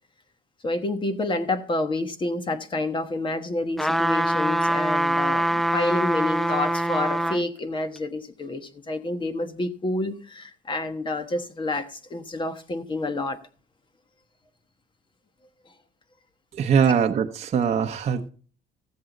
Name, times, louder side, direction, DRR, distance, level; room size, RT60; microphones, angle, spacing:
voice 1, 0.6-13.4, left 2 dB, 30° left, 1.3 m, -29 dB
sound 1, 3.8-7.4 8.0-8.1, right 1 dB, ahead, 0.4 m, -24 dB
voice 2, 16.5-18.3, right 7 dB, 40° right, 0.9 m, -22 dB
15.0 x 7.7 x 3.9 m
cardioid pair, 110°, 17 cm